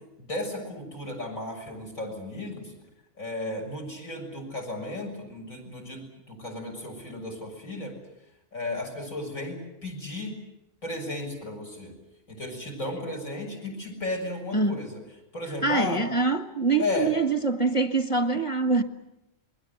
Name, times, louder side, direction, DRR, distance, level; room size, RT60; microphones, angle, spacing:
voice 1, 0.2-2.7 3.2-7.9 8.5-10.4 10.8-11.9 12.3-15.0 15.3-16.0 16.8-17.1, left 2 dB, 80° left, 7.3 m, -34 dB
voice 2, 14.5-14.8 15.6-18.8, right 3 dB, 25° left, 1.6 m, -24 dB
28.0 x 21.5 x 8.0 m
omnidirectional pair, 1.4 m